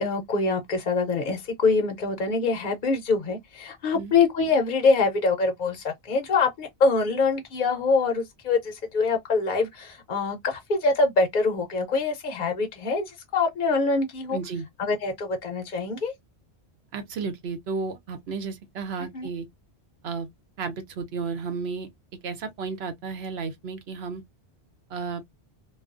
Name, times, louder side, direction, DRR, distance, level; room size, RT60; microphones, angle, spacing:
voice 1, 0.0-14.4 14.8-16.1 19.1-19.3, left 4 dB, 55° left, 0.7 m, -24 dB
voice 2, 14.3-14.7 16.9-19.5 20.0-20.3 20.6-21.9 22.2-24.2 24.9-25.2, right 5 dB, 70° right, 1.0 m, -33 dB
2.3 x 2.2 x 2.4 m
omnidirectional pair, 1.1 m